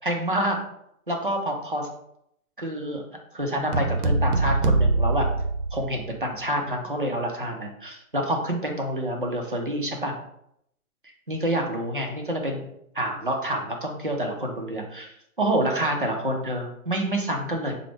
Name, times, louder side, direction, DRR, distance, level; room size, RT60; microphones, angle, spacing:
voice 1, 0.0-0.6 1.1-1.9 2.6-3.0 3.3-5.3 5.7-10.1 11.3-12.6 12.9-17.7, right 1 dB, 40° right, 1 dB, 0.4 m, -27 dB
sound 1, 3.7-6.3, right 2 dB, 85° right, 0.6 m, -23 dB
4.5 x 2.0 x 3.2 m, 0.75 s
hypercardioid pair, 170°, 44 cm